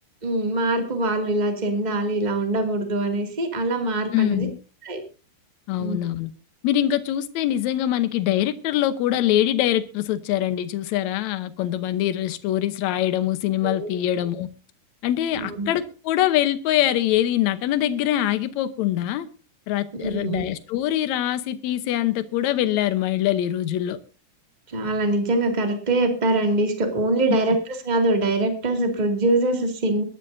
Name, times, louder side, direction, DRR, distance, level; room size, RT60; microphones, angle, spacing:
voice 1, 0.2-4.5 4.8-5.0 5.8-6.0 13.6-13.9 15.3-15.7 20.0-20.4 24.7-30.0, right 2 dB, 15° right, 1.6 m, -23 dB
voice 2, 4.1-4.5 5.7-6.3 6.6-14.5 15.0-19.3 19.7-24.0, left 12 dB, 70° left, 1.8 m, -23 dB
23.0 x 12.0 x 2.7 m
omnidirectional pair, 4.1 m